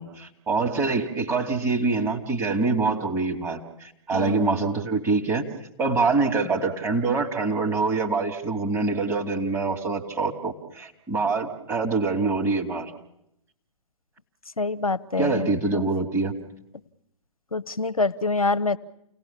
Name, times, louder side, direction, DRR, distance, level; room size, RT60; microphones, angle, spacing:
voice 1, 0.0-5.5 5.8-12.9 15.2-16.3, right 3 dB, 15° right, 2 dB, 2.6 m, -25 dB
voice 2, 4.1-4.5 14.6-15.8 17.5-18.8, left 3 dB, 85° left, 12 dB, 0.8 m, -26 dB
29.5 x 18.0 x 7.4 m, 0.80 s
figure-of-eight pair, 120°, 18 cm